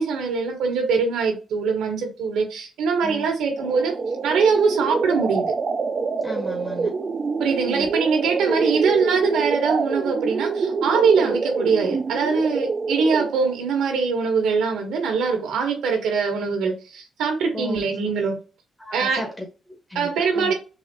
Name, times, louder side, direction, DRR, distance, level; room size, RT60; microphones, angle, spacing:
voice 1, 0.0-3.9 4.2-5.5 7.4-18.4 18.9-19.3 19.9-20.5, right 5 dB, 90° right, 1.1 m, -22 dB
sound 1, 3.6-13.6, right 4 dB, 45° right, 0.3 m, -26 dB
voice 2, 6.2-6.9 7.6-7.9 11.2-11.4 17.5-17.8 18.8-20.5, left 1 dB, 10° left, 0.9 m, -34 dB
4.0 x 2.5 x 2.7 m
cardioid pair, 80°, 0 cm